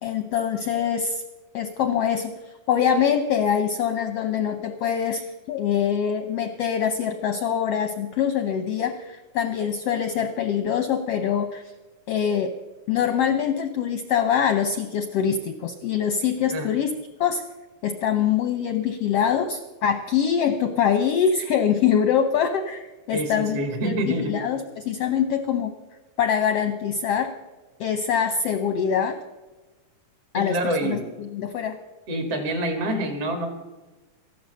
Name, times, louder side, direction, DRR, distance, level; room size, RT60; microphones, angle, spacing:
voice 1, 0.0-1.2 1.5-11.6 12.1-12.5 12.9-16.9 17.2-17.4 17.8-23.6 23.8-25.7 26.2-27.3 27.8-29.2 30.3-31.8, left 8 dB, 75° left, 7 dB, 1.5 m, -24 dB
voice 2, 23.1-24.4 30.5-31.0 32.1-33.5, right 1 dB, 50° right, 5 dB, 2.9 m, -26 dB
14.5 x 11.5 x 6.7 m, 1.2 s
omnidirectional pair, 3.7 m